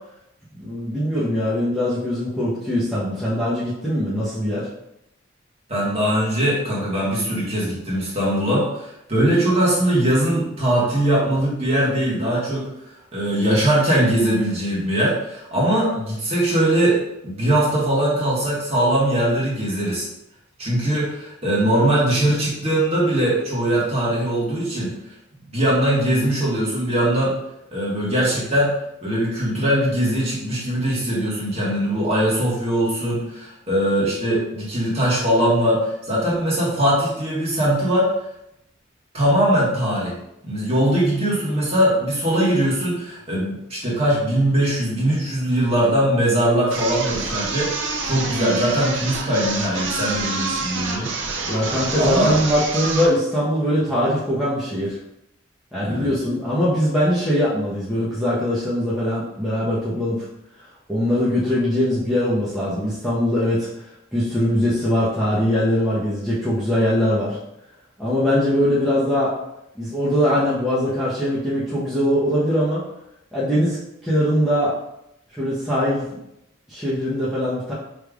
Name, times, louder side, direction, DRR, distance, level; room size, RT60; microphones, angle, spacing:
voice 1, 0.6-4.7 51.4-55.0 55.7-60.2 60.9-63.7 64.1-67.4 68.0-69.4 69.7-72.8 73.3-73.8 74.0-74.7 75.3-76.2 76.7-77.7, equal, ahead, -11 dB, 0.9 m, -21 dB
voice 2, 5.7-12.7 13.1-20.1 20.6-24.9 25.5-27.3 27.7-28.7 29.0-38.1 39.1-40.1 40.4-51.1 52.0-52.3 55.8-56.1, right 1 dB, 30° right, -7 dB, 1.5 m, -21 dB
sound 1, 46.7-53.2, right 3 dB, 65° right, 0.6 m, -27 dB
5.0 x 3.3 x 2.4 m, 0.82 s
head